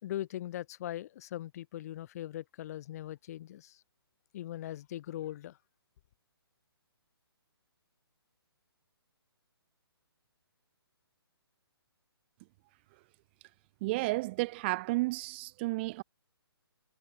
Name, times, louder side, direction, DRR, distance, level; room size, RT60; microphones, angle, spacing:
voice 1, 0.0-3.8 4.3-5.6, left 13 dB, 40° left, 1.7 m, -40 dB
voice 2, 13.8-16.0, right 22 dB, 25° right, 0.7 m, -32 dB
figure-of-eight pair, 135°, 13 cm